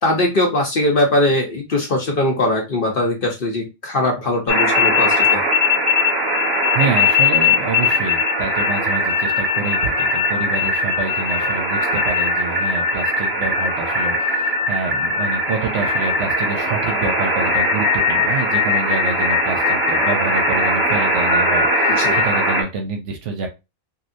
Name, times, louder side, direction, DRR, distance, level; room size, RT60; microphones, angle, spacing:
voice 1, 0.0-5.4 22.0-22.2, left 1 dB, 50° left, 2 dB, 0.8 m, -20 dB
sound 1, 4.5-22.6, left 2 dB, 20° right, 1.1 m, -19 dB
voice 2, 6.7-23.5, right 4 dB, 65° right, 4 dB, 0.9 m, -27 dB
3.1 x 2.6 x 2.6 m, 0.25 s
omnidirectional pair, 1.5 m